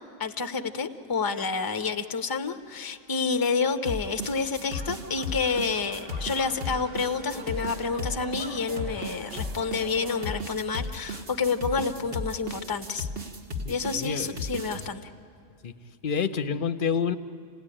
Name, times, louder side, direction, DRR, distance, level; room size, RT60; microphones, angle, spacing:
voice 1, 0.2-13.1 13.7-15.0, left 5 dB, 20° left, 9 dB, 0.7 m, -29 dB
sound 1, 2.6-10.4, right 2 dB, 60° right, 1.5 m, -47 dB
sound 2, 3.9-14.9, left 2 dB, 45° right, 1.5 m, -35 dB
sound 3, 4.0-4.1 4.4-4.5 4.7-6.6 7.1-9.1, equal, 15° right, 1.3 m, -46 dB
voice 2, 13.6-14.4 15.6-15.7 16.0-17.2, left 6 dB, 45° left, 11 dB, 0.9 m, -29 dB
28.5 x 17.5 x 10.0 m, 2.4 s
omnidirectional pair, 1.4 m